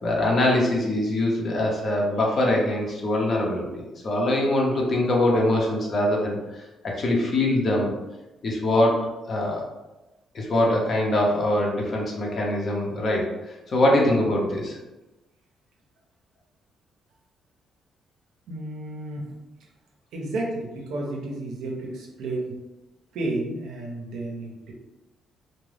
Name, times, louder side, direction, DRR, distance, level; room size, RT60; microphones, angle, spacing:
voice 1, 0.0-7.9 8.4-9.6 10.3-13.3 13.7-14.8, left 1 dB, 45° left, -1 dB, 0.8 m, -23 dB
voice 2, 18.5-19.4 20.1-22.6 23.1-24.7, right 2 dB, 80° right, 0 dB, 0.6 m, -32 dB
2.4 x 2.2 x 3.3 m, 1.0 s
cardioid pair, 90°, 0 cm